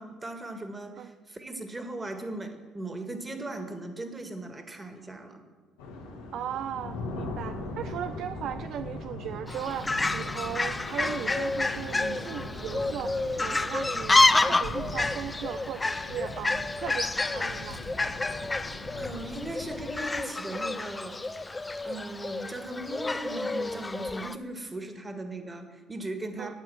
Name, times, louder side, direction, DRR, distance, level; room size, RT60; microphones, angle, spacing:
voice 1, 0.0-5.4 18.9-21.2 21.8-26.6, right 2 dB, 25° right, 6 dB, 1.8 m, -38 dB
sound 1, 5.8-20.0, left 2 dB, 85° left, 1.6 m, -40 dB
voice 2, 6.3-17.8 26.4-26.5, right 10 dB, 65° right, 10 dB, 0.3 m, -37 dB
Fowl, 9.5-24.3, left 2 dB, 20° left, 0.5 m, -29 dB
8.9 x 8.9 x 7.7 m, 1.4 s
hypercardioid pair, 55°, 0 cm